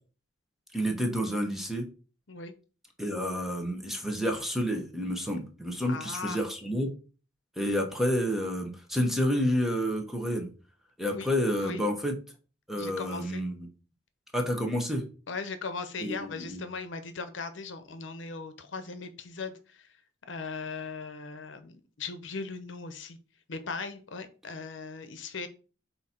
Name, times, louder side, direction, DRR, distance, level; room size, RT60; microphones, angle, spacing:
voice 1, 0.7-1.9 3.0-6.9 7.6-10.5 11.0-12.1 12.7-13.5 14.3-15.0 16.0-16.6, equal, ahead, 2 dB, 1.0 m, -29 dB
voice 2, 5.8-6.4 11.1-11.3 11.6-11.8 12.8-13.4 15.3-19.9 20.3-23.2 23.5-25.5, left 4 dB, 70° left, 10 dB, 0.8 m, -38 dB
7.6 x 2.8 x 4.4 m, 0.36 s
head